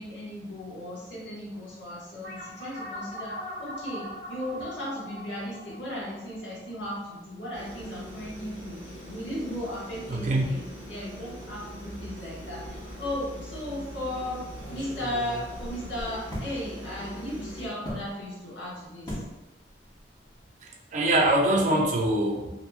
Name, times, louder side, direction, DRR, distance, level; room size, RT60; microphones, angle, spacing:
voice 1, 0.0-19.2, left 1 dB, 85° left, -6 dB, 1.0 m, -36 dB
sound 1, 2.2-7.1, equal, 60° left, 1.0 m, -40 dB
sound 2, 7.5-17.7, equal, 40° left, 1.2 m, -42 dB
voice 2, 10.1-10.4 20.9-22.6, right 1 dB, 40° right, 0 dB, 0.4 m, -23 dB
Punching a wall, 12.6-13.2 13.6-13.7 14.5-16.5 17.8-18.1 19.1-19.3 19.7-20.0 20.2-20.4, equal, 25° left, 0.8 m, -38 dB
2.9 x 2.6 x 2.2 m, 1.1 s
head